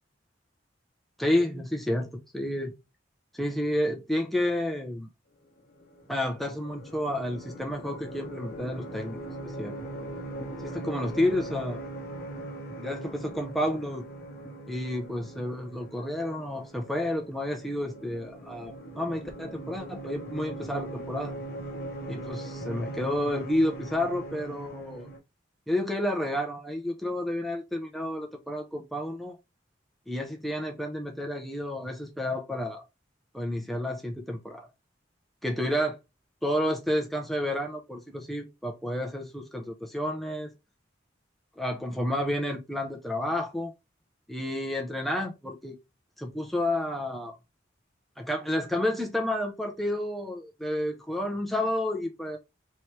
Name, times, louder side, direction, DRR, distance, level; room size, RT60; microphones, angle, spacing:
voice 1, 1.2-2.7 3.3-5.1 6.1-9.2 9.4-9.8 10.6-11.8 12.8-14.1 14.7-21.4 22.1-25.1 25.7-29.4 30.1-32.8 33.3-34.7 35.4-36.0 36.4-40.5 41.6-43.7 44.3-45.8 46.2-47.4 48.2-52.4, left 1 dB, ahead, 0.6 m, -30 dB
sound 1, 5.7-25.2, right 1 dB, 55° left, 1.0 m, -40 dB
4.3 x 3.1 x 3.1 m
head